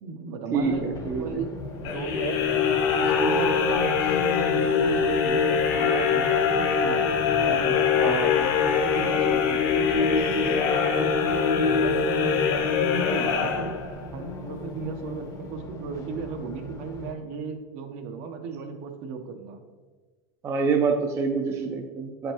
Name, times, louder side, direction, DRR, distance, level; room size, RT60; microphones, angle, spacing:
voice 1, 0.0-0.9 1.2-2.6 3.0-6.5 6.8-7.2 7.5-7.9 8.3-13.8 14.1-19.6, right 5 dB, 55° right, 5 dB, 0.9 m, -35 dB
voice 2, 0.5-1.4 8.0-8.3 11.6-11.9 20.4-22.3, right 5 dB, 20° right, 3 dB, 0.5 m, -26 dB
Race car auto racing, 0.6-17.1, left 2 dB, 25° left, 0.8 m, -38 dB
sound 1, 1.8-14.1, left 6 dB, 55° left, 0.9 m, -23 dB
7.8 x 5.2 x 3.0 m, 1.3 s
supercardioid pair, 145°, 12 cm